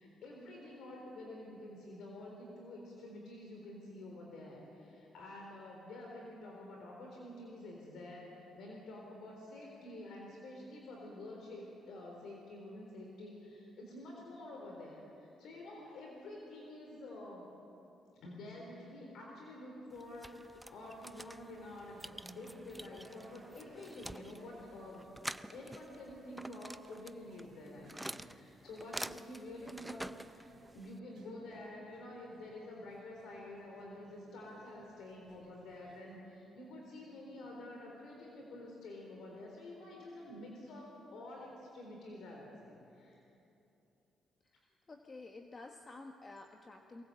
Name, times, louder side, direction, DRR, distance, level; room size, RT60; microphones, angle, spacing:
voice 1, 0.0-17.5 18.2-25.1 25.5-43.2, left 1 dB, 75° left, -1 dB, 3.9 m, -49 dB
sound 1, 19.9-31.0, right 1 dB, 5° right, 0.5 m, -48 dB
sound 2, 20.8-36.2, right 3 dB, 55° right, 3.9 m, -65 dB
voice 2, 44.4-47.0, left 3 dB, 30° left, 4 dB, 1.3 m, -51 dB
23.0 x 19.0 x 7.8 m, 2.9 s
cardioid pair, 90°, 0 cm